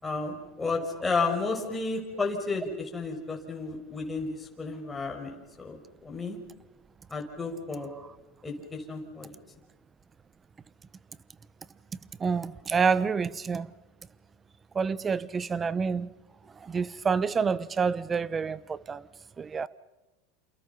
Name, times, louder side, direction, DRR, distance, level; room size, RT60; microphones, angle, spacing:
voice 1, 0.0-6.4 7.1-7.9 8.4-9.3, left 3 dB, 15° left, 5.7 m, -32 dB
voice 2, 12.2-13.7 14.7-16.1 16.6-19.1 19.4-19.7, right 5 dB, 25° right, 1.1 m, -28 dB
28.5 x 28.5 x 5.8 m
hypercardioid pair, 95°, 0 cm